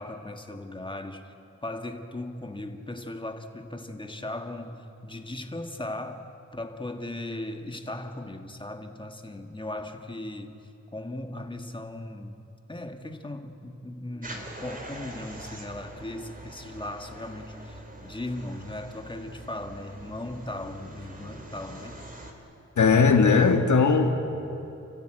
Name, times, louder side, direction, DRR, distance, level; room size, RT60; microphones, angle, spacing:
voice 1, 0.0-1.3 1.6-22.0, left 1 dB, 15° left, 5 dB, 1.6 m, -38 dB
sound 1, 14.2-22.3, right 2 dB, 30° right, 2.9 m, -44 dB
voice 2, 22.8-24.2, left 5 dB, 80° left, 6 dB, 1.8 m, -19 dB
29.0 x 15.0 x 9.0 m, 2.9 s
wide cardioid pair, 120°, 29 cm